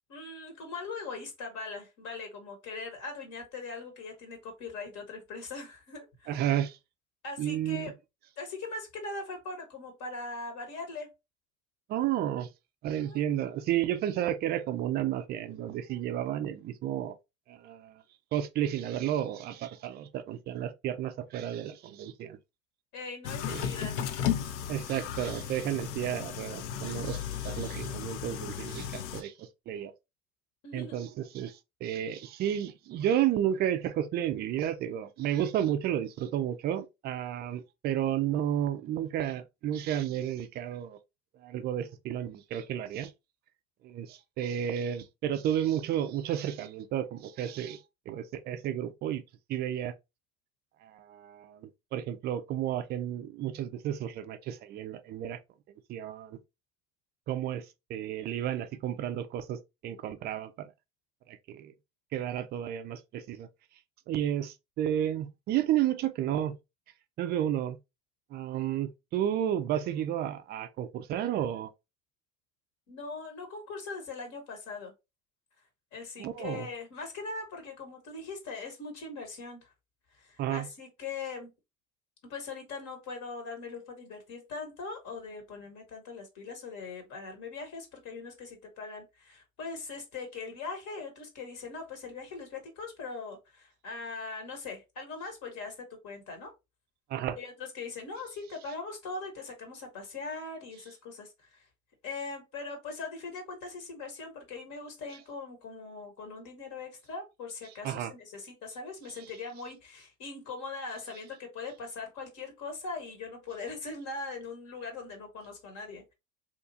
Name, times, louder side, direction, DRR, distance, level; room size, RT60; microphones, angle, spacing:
voice 1, 0.1-6.4 7.2-7.9 8.4-11.1 12.9-13.3 22.9-24.1 30.6-31.1 72.9-74.9 75.9-79.7 80.1-81.5 82.2-96.5 97.4-101.7 102.0-116.1, left 3 dB, 45° left, 1.0 m, -41 dB
voice 2, 6.3-6.8 7.4-7.9 11.9-12.5 12.8-17.1 17.5-18.0 18.3-22.4 23.5-23.7 24.7-29.9 30.7-41.0 41.4-43.1 43.8-47.8 48.1-49.2 49.5-49.9 50.8-55.4 55.9-56.4 57.3-57.6 57.9-60.7 61.3-61.7 62.1-63.5 64.1-66.6 67.2-67.8 68.3-71.7 76.2-76.7 80.4-80.7 97.1-97.4 107.8-108.1, right 11 dB, 25° right, 0.3 m, -32 dB
sound 1, 23.2-29.2, left 9 dB, 65° left, 0.5 m, -35 dB
2.9 x 2.3 x 2.6 m
hypercardioid pair, 80°, 40 cm